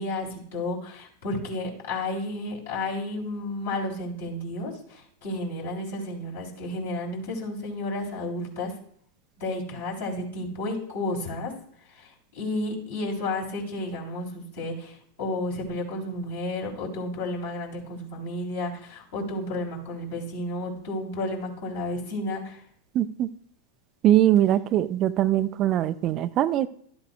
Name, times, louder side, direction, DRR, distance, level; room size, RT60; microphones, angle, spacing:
voice 1, 0.0-8.7 9.4-11.5 11.9-22.6, left 2 dB, 60° left, -2 dB, 3.5 m, -32 dB
voice 2, 22.9-23.3 24.0-26.7, right 12 dB, 35° right, 14 dB, 0.4 m, -22 dB
13.0 x 8.1 x 2.3 m, 0.63 s
figure-of-eight pair, 90°, 0 cm